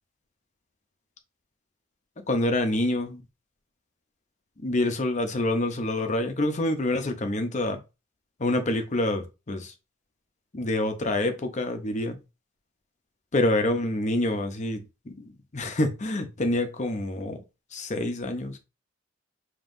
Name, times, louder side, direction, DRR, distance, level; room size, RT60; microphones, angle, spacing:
voice 1, 2.3-3.2 4.6-7.8 8.4-9.7 10.5-12.2 13.3-17.4 17.7-18.6, left 1 dB, 35° left, 0.7 m, -27 dB
5.3 x 2.9 x 2.5 m
head